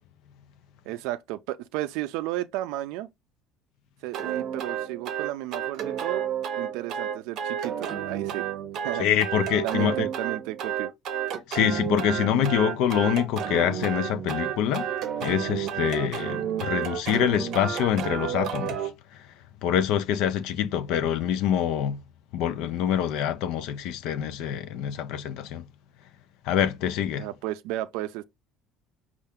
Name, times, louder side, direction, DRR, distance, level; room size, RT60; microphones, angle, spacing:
voice 1, 0.9-3.1 4.0-6.3 6.6-8.4 8.8-9.1 9.6-10.9 27.2-28.2, right 15 dB, 80° right, 0.4 m, -33 dB
sound 1, 4.1-18.9, right 9 dB, 50° right, 0.7 m, -31 dB
voice 2, 9.0-9.9 11.5-14.9 15.2-18.8 19.6-22.0 22.3-25.6 26.5-27.3, left 9 dB, 65° left, 0.4 m, -25 dB
5.5 x 2.4 x 3.5 m
cardioid pair, 165°, 0 cm